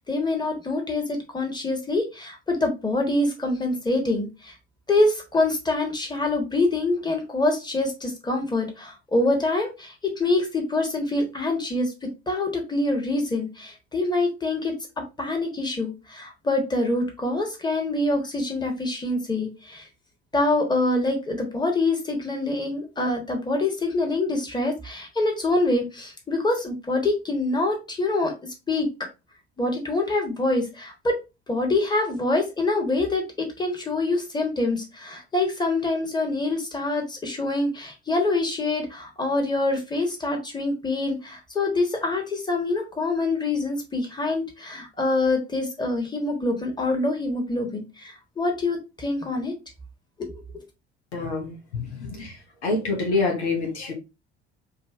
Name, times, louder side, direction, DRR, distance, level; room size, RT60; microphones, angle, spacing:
voice 1, 0.0-4.5 4.9-11.9 12.3-19.9 20.3-28.3 28.7-28.9 29.6-31.1 31.5-49.5 50.5-50.6, left 2 dB, 10° left, 2 dB, 1.5 m, -25 dB
voice 2, 51.1-52.3 52.6-53.9, left 3 dB, 75° left, 1 dB, 1.1 m, -26 dB
4.0 x 2.8 x 3.6 m, 0.26 s
figure-of-eight pair, 55°, 33 cm